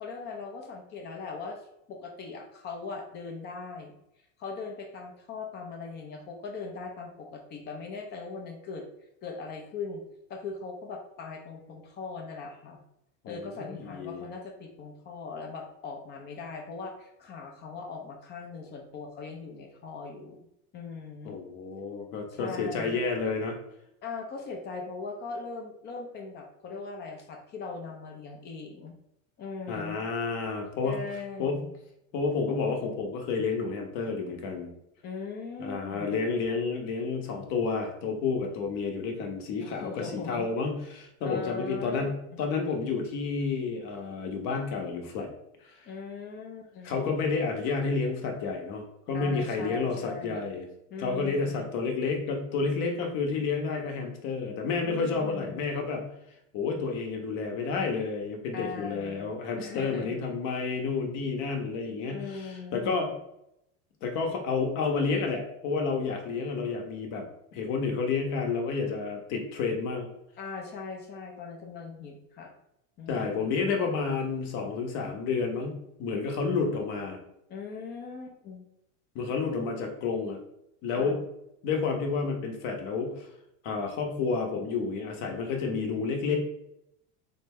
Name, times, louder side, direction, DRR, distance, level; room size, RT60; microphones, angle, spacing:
voice 1, 0.0-1.6 1.9-3.9 4.4-8.9 9.2-10.0 10.3-12.8 13.3-20.5 20.7-21.3 22.3-23.0 24.0-28.9 29.4-30.0 30.8-31.8 35.0-36.2 39.6-40.5 41.2-42.4 45.8-47.0 49.1-50.5 50.9-51.7 54.8-55.7 58.5-59.3 59.6-60.2 62.1-63.2 70.4-72.5 73.0-73.5 77.5-78.7 80.9-81.2, left 4 dB, 30° left, 2 dB, 0.5 m, -40 dB
voice 2, 13.2-14.2 21.2-23.6 29.7-31.0 31.4-31.6 32.1-34.7 35.6-45.3 45.6-45.7 46.8-50.7 51.0-56.1 56.5-63.1 64.0-67.3 67.5-70.1 73.1-77.2 79.1-80.4 80.8-81.2 81.6-83.3 83.6-86.4, left 4 dB, 50° left, 3 dB, 0.8 m, -30 dB
3.8 x 2.1 x 3.5 m, 0.80 s
supercardioid pair, 135°, 38 cm